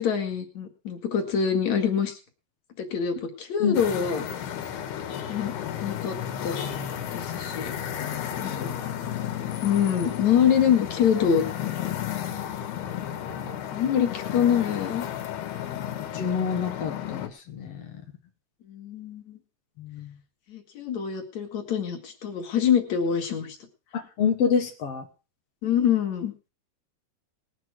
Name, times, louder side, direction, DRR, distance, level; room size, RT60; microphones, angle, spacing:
voice 1, 0.0-2.2 2.8-4.2 5.3-5.5 5.8-6.2 6.4-6.6 7.1-7.7 8.4-8.7 9.6-11.4 13.7-15.1 18.7-19.4 20.5-23.6 25.6-26.3, left 8 dB, 50° left, 4 dB, 2.7 m, -25 dB
sound 1, 3.7-17.3, left 10 dB, 70° left, 3.4 m, -33 dB
voice 2, 8.3-8.6 16.1-17.9 19.8-20.1 23.9-25.1, left 6 dB, 85° left, 4 dB, 1.3 m, -27 dB
20.0 x 8.3 x 4.6 m, 0.33 s
omnidirectional pair, 5.0 m